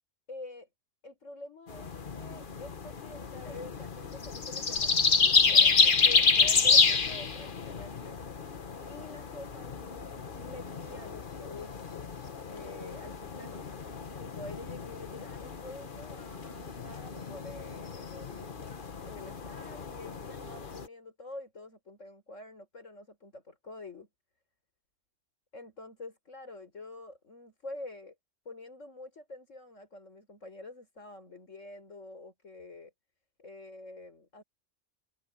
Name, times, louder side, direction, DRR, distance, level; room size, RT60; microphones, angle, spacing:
voice 1, 0.3-0.7 1.0-8.2 8.8-13.7 14.2-18.5 18.8-24.1 25.5-28.2 28.5-32.9 33.4-34.4, left 2 dB, 75° left, 5.2 m, -47 dB
sound 1, 1.7-20.9, left 5 dB, 45° left, 1.3 m, -29 dB
omnidirectional pair, 1.3 m